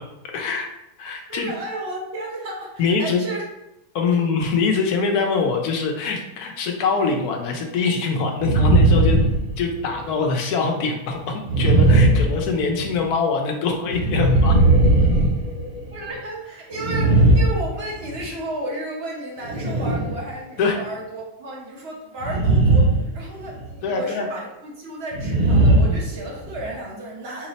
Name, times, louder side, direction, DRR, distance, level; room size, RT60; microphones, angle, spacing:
voice 1, 0.3-0.7 1.0-1.5 2.8-3.2 3.9-9.2 9.6-14.6 20.6-20.8 23.8-24.3, left 4 dB, 85° left, 2 dB, 1.2 m, -23 dB
voice 2, 1.3-3.4 4.1-4.2 15.9-27.5, right 1 dB, 50° right, -2 dB, 1.1 m, -33 dB
sound 1, 8.4-10.0 11.5-13.0 13.9-16.0 16.7-18.3 19.4-20.2 22.2-23.1 23.4-23.7 25.1-26.7, right 2 dB, 75° right, 0.4 m, -18 dB
4.8 x 2.0 x 4.0 m, 0.88 s
omnidirectional pair, 1.6 m